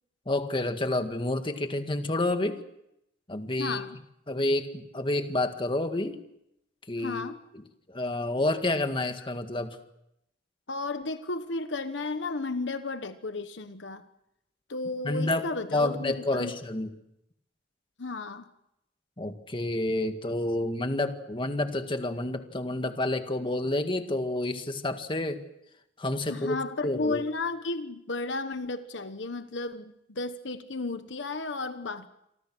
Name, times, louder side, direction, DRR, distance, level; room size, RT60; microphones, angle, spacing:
voice 1, 0.3-2.6 3.3-3.8 4.3-6.2 6.9-7.3 7.9-9.8 15.0-16.9 19.2-25.4 26.0-26.6 26.8-27.2, left 2 dB, 25° left, 7 dB, 1.9 m, -29 dB
voice 2, 3.6-4.0 7.0-7.4 10.7-14.0 14.7-16.5 18.0-18.5 26.3-32.1, left 3 dB, 70° left, 10 dB, 1.2 m, -33 dB
28.0 x 24.5 x 6.2 m, 0.82 s
head